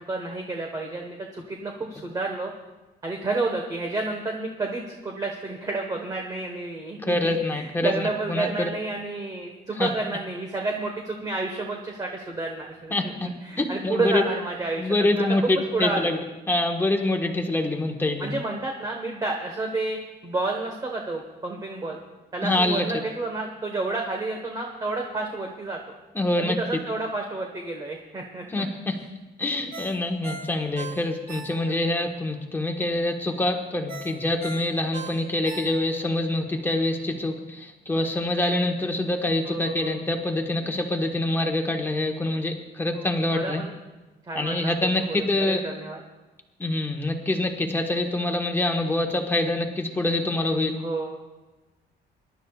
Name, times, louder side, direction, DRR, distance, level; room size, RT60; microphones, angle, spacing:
voice 1, 0.0-2.5 3.0-16.2 18.2-22.0 22.3-25.9 26.4-28.7 31.7-31.8 39.4-40.0 42.9-43.7 44.3-44.7 45.0-46.0 50.8-51.2, right 2 dB, 20° right, 1 dB, 1.3 m, -30 dB
voice 2, 7.0-8.7 9.8-9.9 12.9-13.3 13.6-14.2 14.8-16.2 16.5-18.3 22.4-22.9 26.1-26.6 28.5-29.0 29.4-43.6 44.4-45.6 46.6-50.8, left 2 dB, 10° left, 2 dB, 1.3 m, -25 dB
Ringtone, 29.7-32.0 32.3-32.4 33.9-36.1 36.5-36.6, right 4 dB, 55° right, 2.3 m, -39 dB
25.0 x 12.0 x 2.4 m, 1.1 s
cardioid pair, 155°, 18 cm